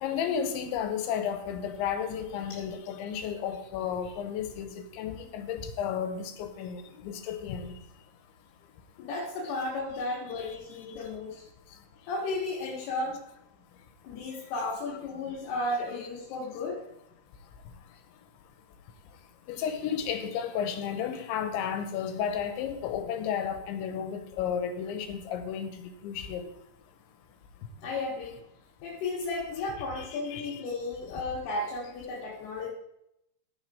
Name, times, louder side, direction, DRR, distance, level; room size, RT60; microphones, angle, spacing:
voice 1, 0.0-7.7 10.4-10.6 19.5-25.7 26.0-26.5 30.0-30.6, left 8 dB, 90° left, 7 dB, 3.3 m, -33 dB
voice 2, 9.0-11.4 12.0-13.2 14.0-16.8 27.8-28.3 28.8-32.7, left 2 dB, 65° left, -5 dB, 3.6 m, -34 dB
15.0 x 6.0 x 4.9 m, 0.82 s
omnidirectional pair, 5.3 m